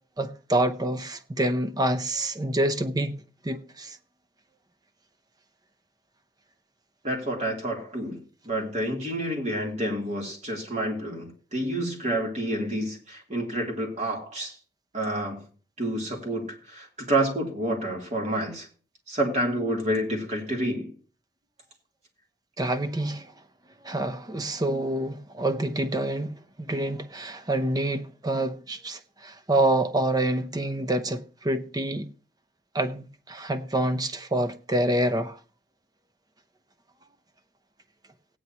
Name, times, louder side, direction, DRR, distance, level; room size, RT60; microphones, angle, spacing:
voice 1, 0.2-3.2 3.4-4.0 22.6-23.3 23.8-32.1 32.7-35.4, right 1 dB, 20° right, 0.7 m, -27 dB
voice 2, 7.0-8.2 8.4-14.5 14.9-15.4 15.8-16.5 16.7-18.6 19.1-20.9, right 1 dB, 40° right, 3.1 m, -28 dB
16.5 x 9.4 x 2.9 m
head